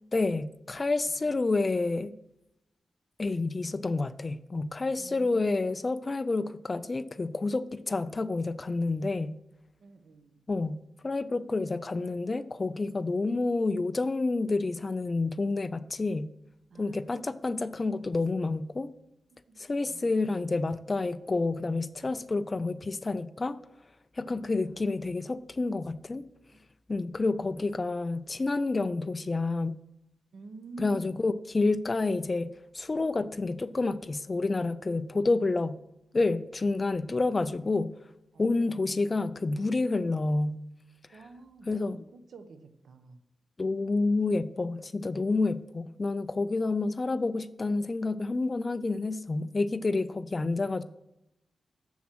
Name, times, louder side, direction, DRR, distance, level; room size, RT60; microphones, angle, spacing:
voice 1, 0.1-2.1 3.2-9.3 10.5-16.3 16.8-18.9 19.6-23.6 24.2-26.3 26.9-29.8 30.8-32.5 32.7-35.8 36.1-37.9 38.4-40.6 41.7-42.0 43.6-50.8, left 3 dB, 30° left, 14 dB, 0.4 m, -29 dB
voice 2, 5.0-5.6 9.8-10.4 16.7-17.1 19.3-20.2 24.7-25.3 27.3-27.7 30.3-31.2 38.3-39.4 41.1-43.2, right 2 dB, 75° right, 8 dB, 1.0 m, -49 dB
7.2 x 7.2 x 6.2 m, 0.86 s
wide cardioid pair, 110°, 0 cm